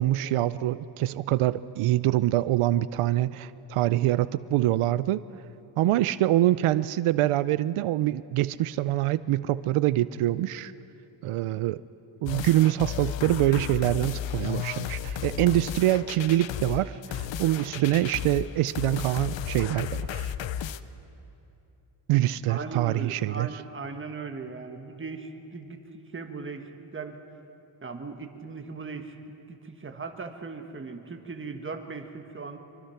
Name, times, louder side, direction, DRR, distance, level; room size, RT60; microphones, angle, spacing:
voice 1, 0.0-5.2 5.8-10.7 11.2-11.8 12.2-20.3 22.1-23.5, right 14 dB, 85° right, 15 dB, 0.6 m, -25 dB
sound 1, 12.3-20.8, left 9 dB, 65° left, 0.7 m, -34 dB
voice 2, 22.5-25.8 26.1-27.2 27.8-29.1 29.5-32.6, right 4 dB, 25° right, 5 dB, 1.4 m, -38 dB
24.0 x 24.0 x 5.8 m, 2.9 s
wide cardioid pair, 140°, 49 cm